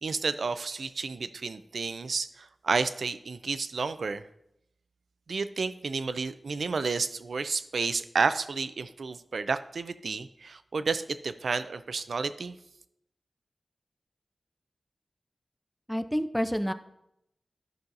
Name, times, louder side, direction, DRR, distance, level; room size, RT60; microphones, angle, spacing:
voice 1, 0.0-4.2 5.3-12.6, right 4 dB, 80° right, 12 dB, 0.4 m, -31 dB
voice 2, 15.9-16.7, equal, ahead, 9 dB, 0.5 m, -28 dB
13.5 x 5.5 x 2.6 m, 0.80 s
wide cardioid pair, 75°, 0 cm